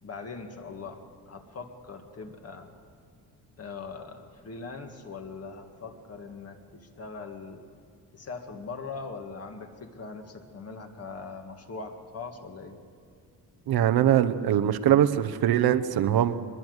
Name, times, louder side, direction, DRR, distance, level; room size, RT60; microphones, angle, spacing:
voice 1, 0.0-2.7 3.6-7.6 8.1-12.8, left 4 dB, 40° left, 4 dB, 2.0 m, -41 dB
voice 2, 13.7-16.3, right 11 dB, 70° right, 10 dB, 1.0 m, -22 dB
23.5 x 21.5 x 8.0 m, 2.2 s
cardioid pair, 160°, 39 cm